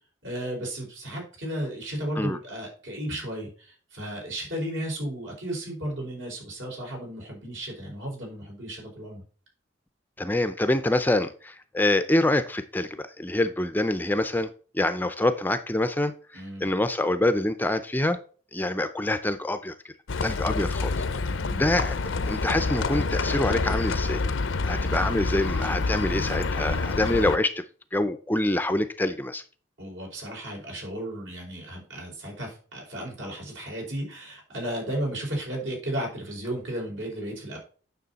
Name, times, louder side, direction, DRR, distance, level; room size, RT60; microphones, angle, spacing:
voice 1, 0.2-9.2 16.3-16.7 21.4-21.6 29.8-37.6, right 1 dB, 75° right, -1 dB, 4.9 m, -34 dB
voice 2, 10.2-14.5 14.7-16.1 16.6-18.2 18.5-19.9 20.2-20.9 21.6-22.0 22.3-24.2 24.7-27.6 27.9-29.4, left 1 dB, 10° left, 10 dB, 0.5 m, -25 dB
Livestock farm animals working animals, 20.1-27.4, left 3 dB, 80° left, 0.6 m, -27 dB
9.3 x 6.2 x 4.1 m, 0.40 s
head